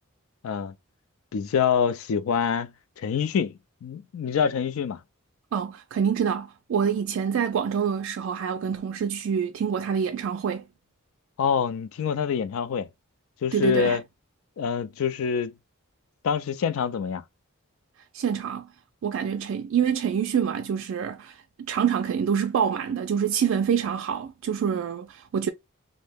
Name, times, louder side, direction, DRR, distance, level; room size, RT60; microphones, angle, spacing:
voice 1, 0.4-0.7 1.3-5.0 11.4-12.9 13.4-14.0 14.6-15.5 16.2-17.2, left 7 dB, 65° left, 0.3 m, -26 dB
voice 2, 5.5-10.6 13.5-14.0 18.1-18.7 19.0-25.5, right 7 dB, 60° right, 0.3 m, -26 dB
2.6 x 2.1 x 3.3 m
head